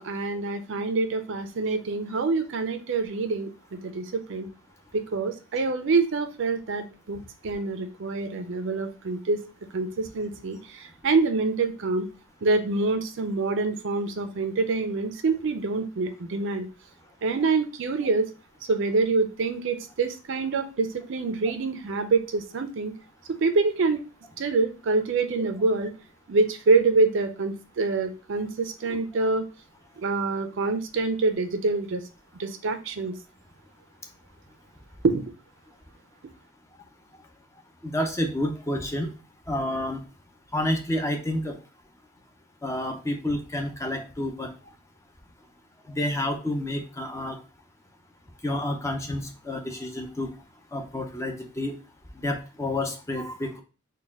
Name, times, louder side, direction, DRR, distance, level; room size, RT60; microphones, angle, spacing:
voice 1, 0.0-4.5 4.9-9.4 9.7-12.1 12.4-16.7 17.2-18.3 18.7-22.9 23.4-24.0 24.4-25.9 26.3-29.4 30.0-32.0 32.4-33.1 35.0-35.2, right 3 dB, 55° right, 9 dB, 0.5 m, -26 dB
voice 2, 37.8-39.1 39.5-40.0 40.5-41.5 42.6-44.5 45.9-47.4 48.4-50.3 50.7-51.8 52.2-53.6, left 1 dB, 15° left, 4 dB, 0.4 m, -29 dB
4.0 x 2.2 x 3.4 m, 0.33 s
head